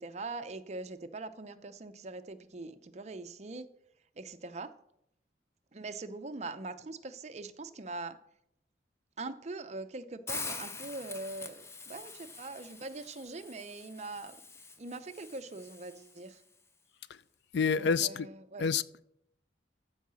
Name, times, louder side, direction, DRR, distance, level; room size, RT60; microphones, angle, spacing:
voice 1, 0.0-3.7 4.2-4.7 5.7-8.2 9.2-14.4 14.8-16.4 17.7-18.7, right 3 dB, 35° right, 0.6 m, -42 dB
Hiss, 10.3-16.3, left 4 dB, 15° left, 0.6 m, -45 dB
voice 2, 17.5-18.3 18.6-19.0, left 6 dB, 65° left, 0.4 m, -28 dB
14.0 x 4.7 x 6.2 m
head